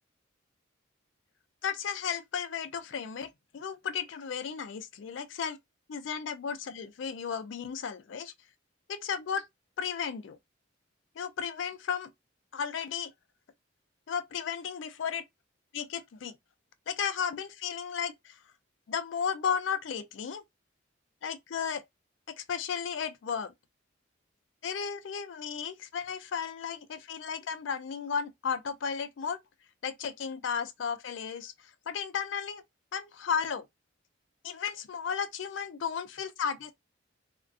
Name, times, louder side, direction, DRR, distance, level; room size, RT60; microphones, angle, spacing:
voice 1, 1.6-5.6 5.9-8.3 8.9-9.5 9.8-10.4 11.2-12.1 12.5-13.1 14.1-15.2 15.7-16.3 16.9-18.4 18.9-20.4 21.2-21.8 22.3-23.5 24.6-29.4 29.8-32.6 32.9-33.7 34.4-36.7, left 7 dB, 65° left, 0.4 m, -34 dB
2.4 x 2.2 x 2.5 m
head